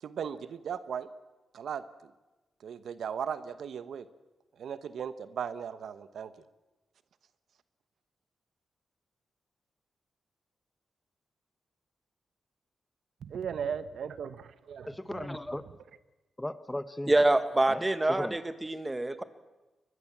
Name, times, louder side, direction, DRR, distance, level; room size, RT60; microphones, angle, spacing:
voice 1, 0.0-1.1 1.5-2.1 2.6-4.1 4.6-6.3 13.2-15.3, right 7 dB, 80° right, 1.1 m, -37 dB
voice 2, 14.9-15.6 16.4-17.1 17.7-18.4, left 1 dB, 10° left, 1.1 m, -37 dB
voice 3, 17.1-19.2, right 2 dB, 20° right, 1.7 m, -26 dB
23.0 x 21.0 x 7.4 m
cardioid pair, 80°, 0 cm